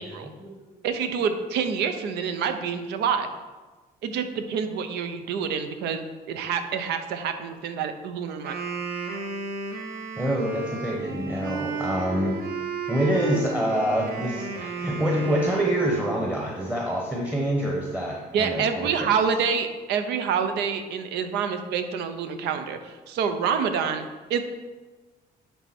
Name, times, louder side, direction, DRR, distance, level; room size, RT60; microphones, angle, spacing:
voice 1, 0.0-0.6 10.2-12.4 12.9-19.1, right 1 dB, 10° right, -2 dB, 0.9 m, -26 dB
voice 2, 0.8-3.3 4.0-8.6 18.3-24.4, right 6 dB, 80° right, 8 dB, 0.7 m, -27 dB
Wind instrument woodwind instrument, 8.3-16.4, right 4 dB, 65° right, 1.3 m, -34 dB
10.5 x 3.5 x 4.3 m, 1.3 s
cardioid pair, 110°, 17 cm